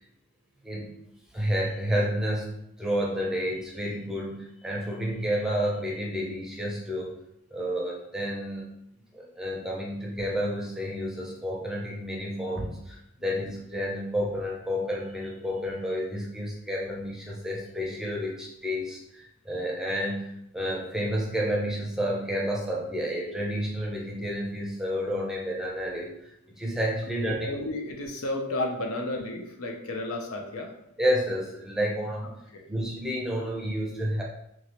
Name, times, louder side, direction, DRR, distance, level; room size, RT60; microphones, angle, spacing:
voice 1, 1.3-7.1 7.5-8.7 9.1-26.1 26.6-27.5 31.0-32.3 32.7-34.2, equal, ahead, -3 dB, 0.7 m, -30 dB
voice 2, 27.2-30.8 32.5-32.6, left 2 dB, 65° left, 2 dB, 0.7 m, -32 dB
4.6 x 2.9 x 3.0 m, 0.77 s
head